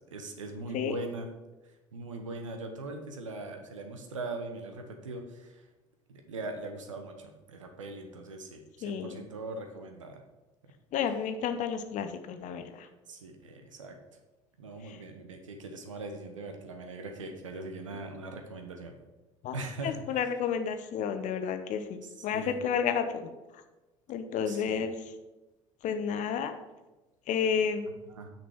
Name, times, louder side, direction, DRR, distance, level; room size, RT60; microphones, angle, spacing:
voice 1, 0.1-1.3 1.9-5.7 6.1-10.2 13.1-14.0 14.6-19.0 19.5-20.2 22.0-22.5 24.5-24.8 28.0-28.3, right 2 dB, 85° right, 5 dB, 1.1 m, -41 dB
voice 2, 8.8-9.2 10.9-12.9 14.9-15.0 19.4-19.5 19.8-23.3 24.1-25.0 25.8-26.5 27.3-27.9, left 7 dB, 50° left, 8 dB, 0.9 m, -31 dB
6.2 x 5.9 x 6.0 m, 1.1 s
figure-of-eight pair, 60°, 16 cm